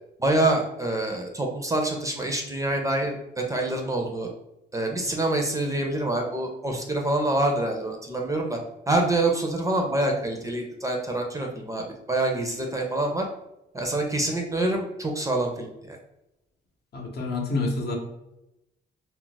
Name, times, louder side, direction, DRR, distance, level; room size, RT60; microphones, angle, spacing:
voice 1, 0.2-4.3 4.7-8.6 8.9-13.3 13.7-16.0, right 2 dB, 15° right, 1 dB, 0.5 m, -26 dB
voice 2, 16.9-18.0, left 3 dB, 55° left, 1 dB, 0.8 m, -28 dB
2.4 x 2.1 x 3.8 m, 0.89 s
cardioid pair, 90°, 20 cm